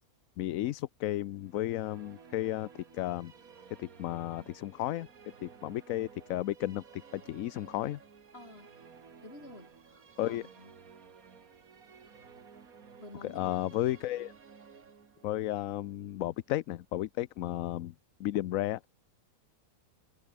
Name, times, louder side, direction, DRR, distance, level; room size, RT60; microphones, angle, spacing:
voice 1, 0.4-3.3 3.8-5.1 5.4-8.0 10.2-10.4 13.2-14.3 15.2-17.9 18.2-18.9, left 14 dB, 75° left, 1.0 m, -33 dB
Musical instrument, 1.4-16.8, right 6 dB, 85° right, 2.2 m, -55 dB
voice 2, 8.3-8.7 9.2-10.7 13.0-13.8, left 1 dB, 45° left, 6.7 m, -50 dB
omnidirectional pair, 1.5 m